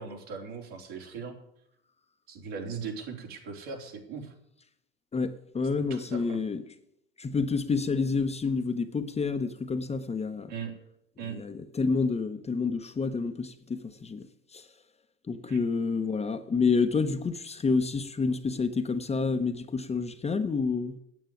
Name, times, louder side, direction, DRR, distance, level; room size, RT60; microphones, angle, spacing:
voice 1, 0.0-1.4 2.3-4.3 5.9-6.4 10.5-10.7 11.2-11.4 15.5-15.6, right 5 dB, 70° right, 3.8 m, -39 dB
voice 2, 5.1-6.6 7.2-10.5 11.3-14.3 14.5-14.7 15.3-21.0, left 4 dB, 20° left, 0.9 m, -29 dB
9.2 x 8.3 x 9.3 m
hypercardioid pair, 95°, 33 cm